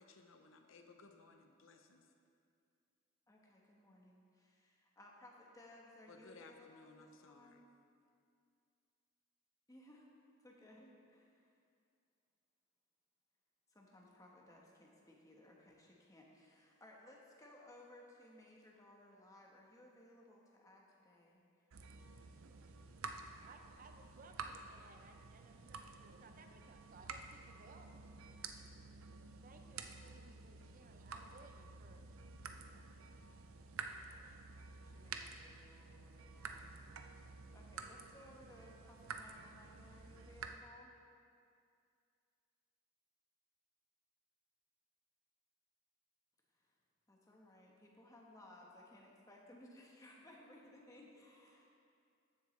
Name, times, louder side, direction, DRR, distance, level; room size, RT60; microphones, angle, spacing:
voice 1, 0.0-2.1 6.1-7.6, left 3 dB, 75° left, 5 dB, 0.7 m, -60 dB
voice 2, 3.3-7.7 9.7-10.1 10.4-11.6 13.7-21.4 34.8-36.7 37.5-40.9 46.5-46.7 47.1-51.8, left 1 dB, 15° left, -2 dB, 1.1 m, -61 dB
sound 1, 21.7-40.6, right 5 dB, 85° right, 0.6 m, -51 dB
voice 3, 23.4-28.1 29.4-32.2, right 3 dB, 40° right, 5 dB, 0.6 m, -61 dB
14.5 x 7.0 x 3.2 m, 2.4 s
head